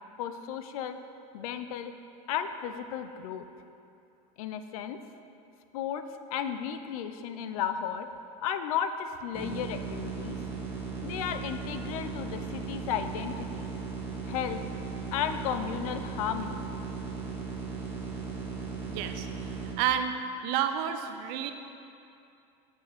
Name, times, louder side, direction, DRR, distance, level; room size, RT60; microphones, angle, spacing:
voice 1, 0.2-1.0 1.3-1.9 2.3-3.4 4.4-5.0 5.7-6.0 6.3-8.1 8.4-10.4 11.0-13.7 14.2-14.6 15.1-16.6, left 9 dB, 80° left, 9 dB, 0.5 m, -34 dB
sound 1, 9.3-19.7, right 5 dB, 10° right, 1.1 m, -37 dB
voice 2, 18.9-19.3 19.8-20.2 20.4-21.5, right 9 dB, 60° right, 8 dB, 0.5 m, -29 dB
7.7 x 6.2 x 3.5 m, 2.6 s
supercardioid pair, 120°, 18 cm